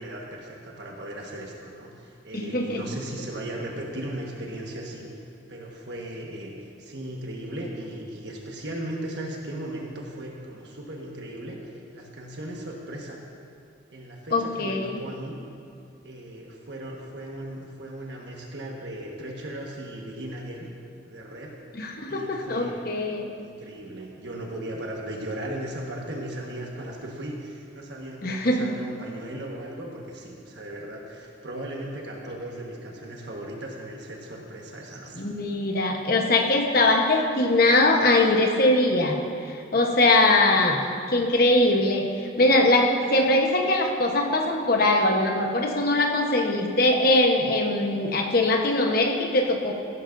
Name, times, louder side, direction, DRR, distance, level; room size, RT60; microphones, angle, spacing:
voice 1, 0.0-5.0 5.5-13.2 13.9-15.4 16.0-20.7 21.0-21.5 22.1-22.8 23.4-35.2, right 1 dB, 60° right, -1 dB, 1.5 m, -37 dB
voice 2, 2.3-2.9 14.3-15.0 21.7-23.3 28.2-28.7 35.2-39.2 39.5-40.8 41.1-49.7, left 2 dB, 50° left, 2 dB, 1.1 m, -22 dB
15.5 x 13.0 x 2.6 m, 2.4 s
head